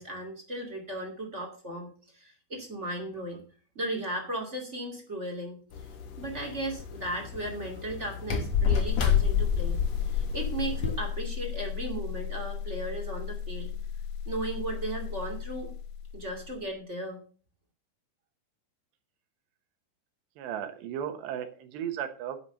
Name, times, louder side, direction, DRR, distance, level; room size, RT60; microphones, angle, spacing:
voice 1, 0.0-1.9 2.1-3.4 3.7-5.6 6.2-13.7 14.3-15.7 16.1-17.2, right 1 dB, 25° right, 2 dB, 1.8 m, -36 dB
sound 1, 5.7-11.0, left 7 dB, 60° left, 1.8 m, -29 dB
sound 2, 8.9-16.7, left 8 dB, 80° left, 3.0 m, -35 dB
voice 2, 20.4-22.4, right 9 dB, 80° right, 8 dB, 3.3 m, -35 dB
10.0 x 7.0 x 6.6 m, 0.40 s
omnidirectional pair, 5.0 m